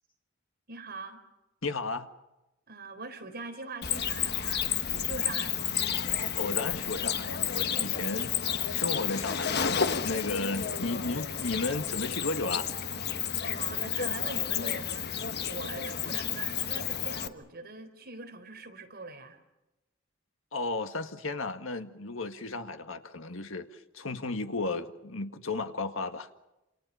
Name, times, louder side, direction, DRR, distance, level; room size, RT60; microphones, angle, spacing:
voice 1, 0.7-1.2 2.7-5.9 13.5-19.4, right 3 dB, 50° right, 4.0 m, -42 dB
voice 2, 1.6-2.1 6.4-12.7 20.5-26.3, left 3 dB, 70° left, 1.9 m, -34 dB
Cricket, 3.8-17.3, left 8 dB, 55° left, 1.3 m, -31 dB
29.0 x 27.5 x 5.7 m
head